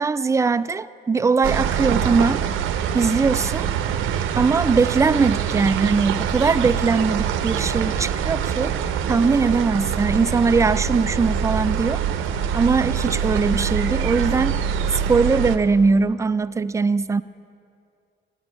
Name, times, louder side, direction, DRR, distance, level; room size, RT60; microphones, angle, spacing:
voice 1, 0.0-2.4 2.9-3.7 4.4-8.7 9.1-12.0 12.5-14.6 14.9-17.2, right 4 dB, 15° right, 15 dB, 0.3 m, -20 dB
sound 1, 1.4-15.6, right 8 dB, 85° right, 0.7 m, -24 dB
12.5 x 9.7 x 7.1 m, 2.4 s
cardioid pair, 90°, 20 cm